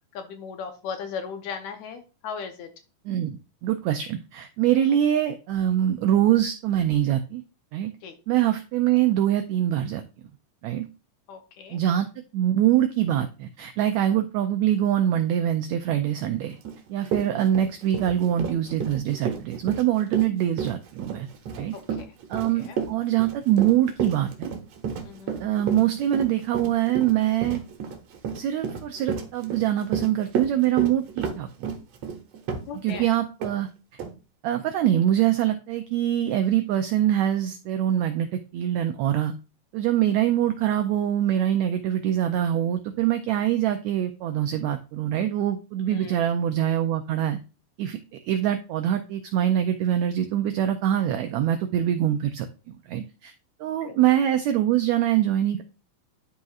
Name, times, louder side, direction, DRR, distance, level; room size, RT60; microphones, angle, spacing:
voice 1, 0.1-2.7 8.0-8.1 11.3-11.8 22.0-22.1 22.3-22.8 25.0-25.3 32.7-33.0 45.9-46.3 53.8-54.0, left 6 dB, 70° left, 6 dB, 1.9 m, -37 dB
voice 2, 3.0-7.4 7.7-7.9 8.3-10.0 10.6-10.9 11.7-12.1 12.3-16.6 16.9-21.3 21.6-21.7 22.3-24.5 25.4-27.6 28.3-31.5 32.7-33.7 34.4-39.3 39.7-47.4 47.8-48.0 48.2-53.3 53.6-55.6, right 11 dB, 90° right, 7 dB, 1.6 m, -24 dB
Run, 16.6-16.8 17.1-33.0 33.4-33.5 34.0-34.1, right 6 dB, 65° right, 2.0 m, -31 dB
12.0 x 4.2 x 2.4 m, 0.31 s
omnidirectional pair, 3.8 m